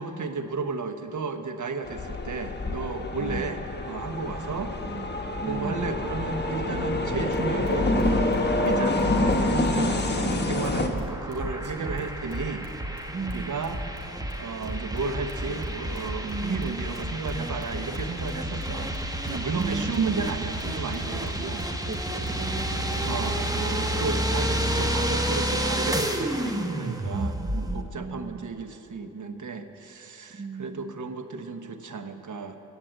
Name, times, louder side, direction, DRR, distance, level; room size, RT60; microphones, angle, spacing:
voice 1, 0.0-4.7 5.5-12.7 13.3-13.8 14.4-18.9 19.2-21.7 23.0-32.6, right 4 dB, 50° right, 8 dB, 1.1 m, -33 dB
sound 1, 1.8-10.9, left 2 dB, 25° left, 1.3 m, -27 dB
voice 2, 3.2-3.6 4.3-5.9 9.7-10.6 11.6-12.1 13.1-13.6 16.2-16.8 19.5-20.3 21.9-22.7 27.1-28.6 30.3-31.0, right 4 dB, 25° right, 6 dB, 0.7 m, -36 dB
sound 2, 7.3-23.4, right 3 dB, 75° right, 3.3 m, -47 dB
sound 3, 10.9-27.8, right 1 dB, 10° right, 1.1 m, -30 dB
16.0 x 6.0 x 8.0 m, 3.0 s
supercardioid pair, 50°, 39 cm